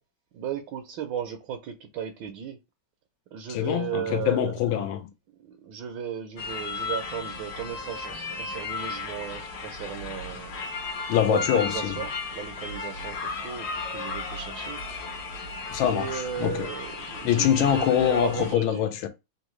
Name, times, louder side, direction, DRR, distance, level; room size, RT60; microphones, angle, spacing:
voice 1, 0.3-2.6 3.3-4.5 5.4-10.6 10.9-14.8 15.9-18.8, right 8 dB, 75° right, 1.3 m, -35 dB
voice 2, 3.5-5.1 11.1-12.0 15.7-16.7 17.2-19.1, left 10 dB, 85° left, 1.5 m, -24 dB
sound 1, 6.4-18.5, left 3 dB, 60° left, 1.2 m, -35 dB
3.7 x 2.6 x 3.0 m
omnidirectional pair, 2.2 m